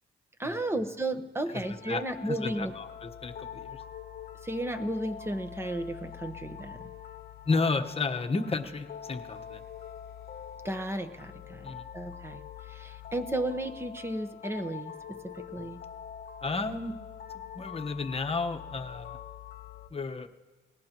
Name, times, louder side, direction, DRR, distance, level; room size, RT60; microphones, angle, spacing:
voice 1, 0.4-2.7 4.4-6.9 10.6-12.4 12.7-15.8, right 1 dB, 10° right, 8 dB, 1.2 m, -34 dB
voice 2, 1.5-3.8 7.4-9.6 11.6-11.8 16.4-17.0 17.3-19.2 19.9-20.3, left 3 dB, 30° left, 5 dB, 1.2 m, -32 dB
sound 1, 1.6-19.9, left 8 dB, 55° left, 1.0 m, -45 dB
20.0 x 19.0 x 3.0 m, 1.3 s
cardioid pair, 90°, 20 cm